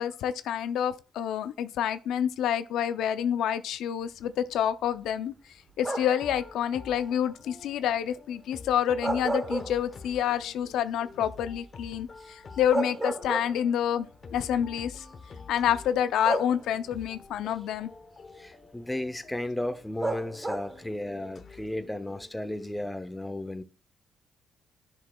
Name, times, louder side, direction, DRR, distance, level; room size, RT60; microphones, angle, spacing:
voice 1, 0.0-5.3 5.8-14.1 14.3-15.0 15.5-17.9, left 9 dB, 80° left, 0.5 m, -28 dB
sound 1, 5.8-6.3 8.8-10.2 10.6-10.7 12.2-12.3 12.7-13.8 14.9-15.0 16.2-17.0 20.0-20.9, right 2 dB, 20° right, 1.1 m, -32 dB
sound 2, 6.2-22.8, left 4 dB, 40° left, 1.0 m, -48 dB
voice 2, 18.4-23.6, left 1 dB, 10° left, 0.7 m, -34 dB
10.0 x 6.2 x 2.3 m
cardioid pair, 90°, 0 cm